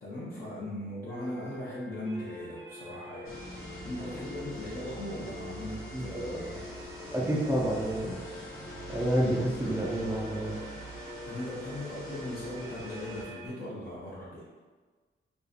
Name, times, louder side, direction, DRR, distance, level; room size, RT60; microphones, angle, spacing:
voice 1, 0.0-3.4 3.8-6.6 11.3-14.5, left 1 dB, 45° left, -9 dB, 0.5 m, -39 dB
sound 1, 1.1-13.5, left 1 dB, 85° right, 0.8 m, -45 dB
sound 2, 3.2-13.2, right 1 dB, 85° left, 0.6 m, -44 dB
voice 2, 5.9-6.4 7.1-8.2 8.9-10.6, right 1 dB, 10° right, -4 dB, 0.4 m, -29 dB
2.5 x 2.4 x 2.5 m, 1.4 s
wide cardioid pair, 160°, 21 cm